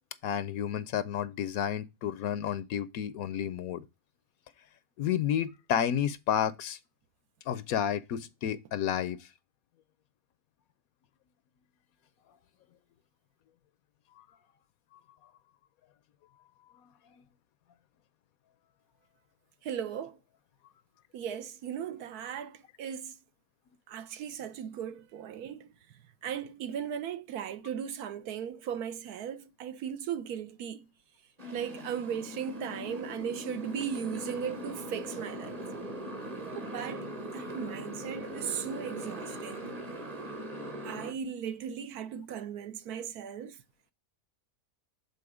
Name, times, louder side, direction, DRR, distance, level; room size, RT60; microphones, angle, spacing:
voice 1, 0.2-3.8 5.0-6.8 7.5-9.3 14.2-14.3, left 9 dB, 70° left, 0.9 m, -31 dB
voice 2, 19.6-20.2 21.1-23.2 23.9-25.7 26.2-30.8 31.5-35.6 36.5-39.7 40.8-43.6, right 8 dB, 70° right, 1.1 m, -37 dB
Motorcycle, 31.4-41.1, equal, 30° right, 1.0 m, -40 dB
7.0 x 4.0 x 4.8 m
omnidirectional pair, 1.7 m